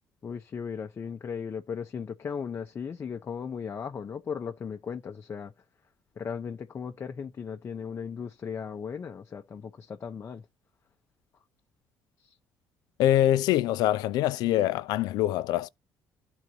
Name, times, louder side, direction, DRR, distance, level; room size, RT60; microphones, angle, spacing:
voice 1, 0.2-5.5 6.2-10.4 12.2-12.4, left 6 dB, 40° left, 0.8 m, -37 dB
voice 2, 13.0-15.7, left 13 dB, 75° left, 0.5 m, -24 dB
12.0 x 4.1 x 3.0 m
supercardioid pair, 85°, 7 cm